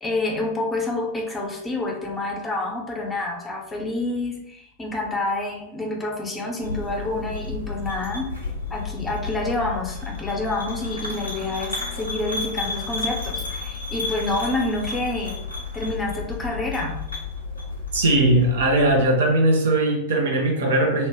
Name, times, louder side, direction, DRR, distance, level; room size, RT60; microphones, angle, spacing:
voice 1, 0.0-8.3 8.7-15.4 15.7-17.0, left 2 dB, 15° left, 0.6 m, -28 dB
sound 1, 6.6-19.0, left 4 dB, 85° left, 0.7 m, -32 dB
voice 2, 17.9-21.1, right 1 dB, 60° right, 0.6 m, -19 dB
2.1 x 2.1 x 3.4 m
figure-of-eight pair, 90°, 0 cm